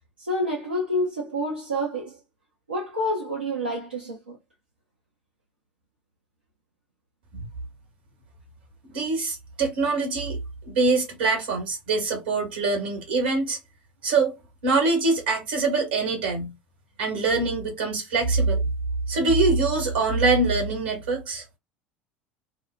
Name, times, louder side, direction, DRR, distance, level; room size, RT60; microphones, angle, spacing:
voice 1, 0.2-2.2 2.7-4.4, equal, 85° right, 0.6 m, -28 dB
voice 2, 8.9-10.4 10.6-13.6 14.0-14.4 14.6-16.5 17.0-18.6 19.1-21.4, right 3 dB, 65° right, 1.3 m, -24 dB
2.7 x 2.1 x 2.4 m
figure-of-eight pair, 70°, 6 cm